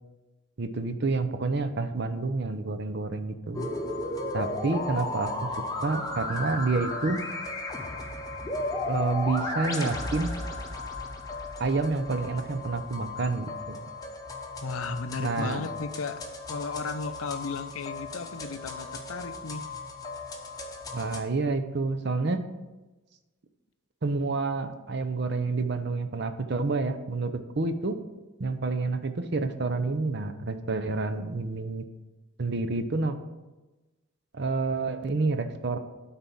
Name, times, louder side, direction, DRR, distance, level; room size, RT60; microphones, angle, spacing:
voice 1, 0.6-3.7 4.3-5.3 5.8-7.2 8.9-10.3 11.6-13.9 15.2-15.6 20.9-22.4 24.0-27.9 28.4-31.8 32.4-33.2 34.3-35.8, right 3 dB, 50° right, 9 dB, 0.6 m, -28 dB
sound 1, 3.5-21.2, left 2 dB, 15° left, 0.9 m, -35 dB
voice 2, 14.6-16.2 16.5-19.7, left 4 dB, 75° left, 11 dB, 0.6 m, -35 dB
9.5 x 4.1 x 7.0 m, 1.1 s
head